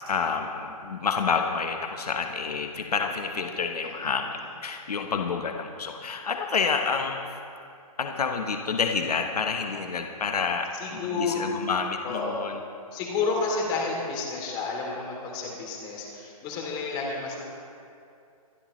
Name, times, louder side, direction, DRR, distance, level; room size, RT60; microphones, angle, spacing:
voice 1, 0.1-7.3 8.0-12.6, left 5 dB, 90° left, 4 dB, 1.2 m, -29 dB
voice 2, 10.8-11.5 12.0-12.4 12.9-17.4, left 4 dB, 25° left, -1 dB, 3.0 m, -30 dB
24.0 x 12.0 x 3.2 m, 2.5 s
hypercardioid pair, 155°, 19 cm